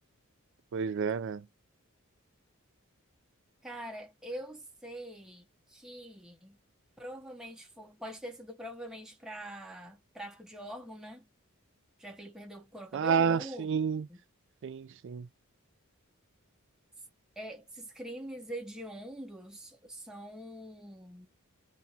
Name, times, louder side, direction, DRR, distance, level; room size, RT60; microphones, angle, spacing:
voice 1, 0.7-1.4 12.9-14.1 14.6-15.3, right 6 dB, 60° right, 0.4 m, -30 dB
voice 2, 3.6-6.6 7.0-11.2 12.0-13.7 14.1-14.2 17.4-21.3, right 1 dB, 5° right, 0.6 m, -44 dB
2.7 x 2.2 x 2.7 m
head